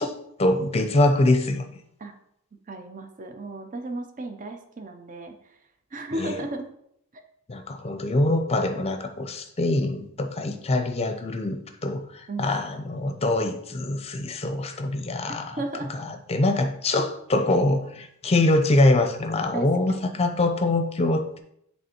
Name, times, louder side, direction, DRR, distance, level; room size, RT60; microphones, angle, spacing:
voice 1, 0.0-1.8 6.2-6.4 7.5-15.6 15.9-21.4, left 2 dB, 30° left, 7 dB, 0.6 m, -24 dB
voice 2, 2.7-5.3 5.9-6.7 12.3-12.5 15.6-15.9 19.5-20.2, right 2 dB, 35° right, 6 dB, 0.7 m, -34 dB
8.0 x 3.5 x 4.4 m, 0.73 s
head